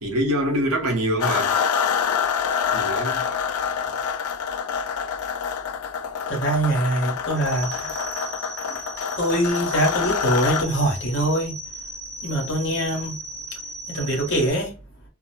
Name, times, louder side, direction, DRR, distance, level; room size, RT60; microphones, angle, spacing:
voice 1, 0.0-1.5 2.7-3.3, right 1 dB, 75° right, 1.0 m, -24 dB
sound 1, 1.2-10.6, left 7 dB, 75° left, 0.4 m, -26 dB
voice 2, 6.3-8.0 9.2-11.5 12.2-13.2 13.9-14.7, right 1 dB, 60° left, 1.2 m, -23 dB
sound 2, 7.4-14.5, right 1 dB, 15° right, 0.6 m, -37 dB
2.8 x 2.0 x 2.8 m
head